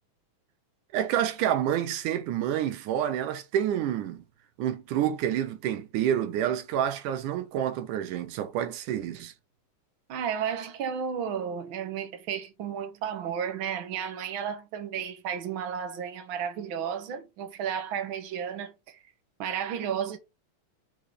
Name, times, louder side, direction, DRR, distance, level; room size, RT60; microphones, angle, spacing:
voice 1, 0.9-4.2 4.6-9.3, right 10 dB, 80° right, 2.4 m, -28 dB
voice 2, 10.1-19.0 19.4-20.2, right 8 dB, 60° right, 1.4 m, -33 dB
5.1 x 4.2 x 4.7 m
omnidirectional pair, 3.6 m